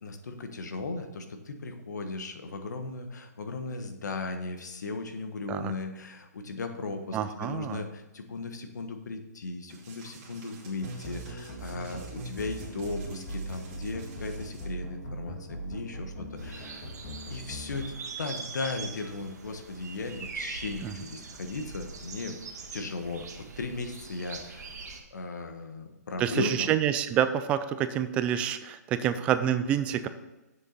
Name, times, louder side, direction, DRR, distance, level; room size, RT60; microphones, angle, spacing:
voice 1, 0.0-16.9 17.3-22.4 22.7-23.3 23.6-24.6 25.1-26.7, left 3 dB, 75° left, 6 dB, 1.4 m, -37 dB
voice 2, 7.1-7.8 20.8-20.9 26.2-30.1, right 10 dB, 15° right, 11 dB, 0.3 m, -27 dB
sound 1, 9.7-14.7, right 3 dB, 30° right, 2.7 m, -52 dB
sound 2, 10.8-17.8, right 1 dB, 25° left, 2.2 m, -40 dB
sound 3, 16.4-25.0, right 4 dB, 65° right, 1.7 m, -42 dB
7.5 x 6.6 x 5.5 m, 1.0 s
hypercardioid pair, 160°, 9 cm